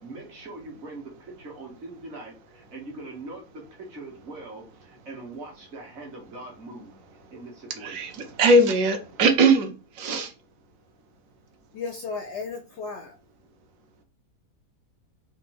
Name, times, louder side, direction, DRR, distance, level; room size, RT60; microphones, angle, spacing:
voice 1, 0.0-6.9 7.3-8.1, right 2 dB, 50° right, 1.5 m, -42 dB
voice 2, 7.8-8.1 8.4-10.3, right 2 dB, 65° right, 1.1 m, -20 dB
voice 3, 11.7-13.1, left 4 dB, 70° left, 0.7 m, -34 dB
3.9 x 2.6 x 3.8 m
omnidirectional pair, 1.6 m